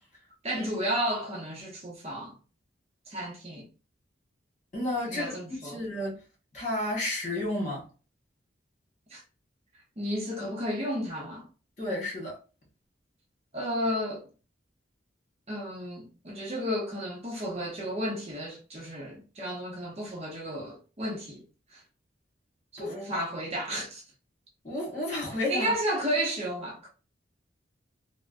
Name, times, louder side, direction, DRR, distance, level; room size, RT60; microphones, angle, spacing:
voice 1, 0.4-2.3 3.1-3.6 5.1-5.8 9.1-9.2 10.0-11.5 13.5-14.2 15.5-21.4 21.7-21.8 22.7-24.0 25.5-26.9, equal, 35° right, 0.8 m, -32 dB
voice 2, 4.7-5.3 5.6-6.2 6.5-7.8 11.8-12.4 22.8-23.0 24.6-25.7, left 1 dB, 40° left, 1.6 m, -31 dB
3.4 x 2.1 x 2.5 m
head